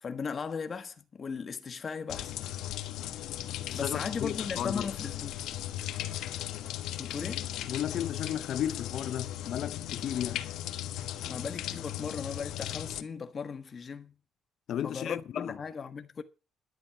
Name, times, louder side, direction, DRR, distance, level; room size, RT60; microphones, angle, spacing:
voice 1, 0.0-2.3 3.7-5.4 7.0-7.5 11.2-14.1 14.8-16.2, left 5 dB, 30° left, 1.4 m, -37 dB
sound 1, 2.1-13.0, left 12 dB, 80° left, 1.2 m, -37 dB
voice 2, 3.6-4.9 7.7-10.5 14.7-15.6, left 10 dB, 55° left, 0.6 m, -34 dB
12.0 x 10.0 x 5.9 m
cardioid pair, 150°, 0 cm